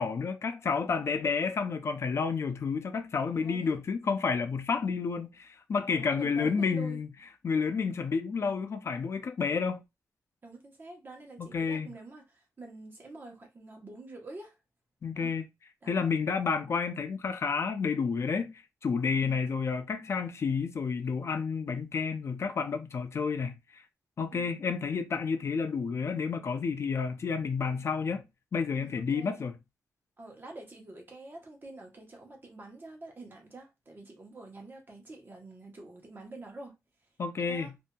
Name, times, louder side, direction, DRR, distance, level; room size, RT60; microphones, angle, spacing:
voice 1, 0.0-7.1 7.4-9.8 11.4-11.9 15.0-15.5 15.9-18.5 18.8-23.8 24.2-28.2 28.5-29.5 37.2-37.7, left 5 dB, 55° left, 0.4 m, -30 dB
voice 2, 3.3-3.7 4.0-4.1 5.9-7.0 10.4-14.6 15.1-15.4 15.8-16.1 19.1-19.4 24.3-24.8 28.7-29.4 30.2-36.8 37.5-37.7, right 2 dB, 40° right, 1.0 m, -47 dB
2.7 x 2.6 x 2.3 m
cardioid pair, 80°, 6 cm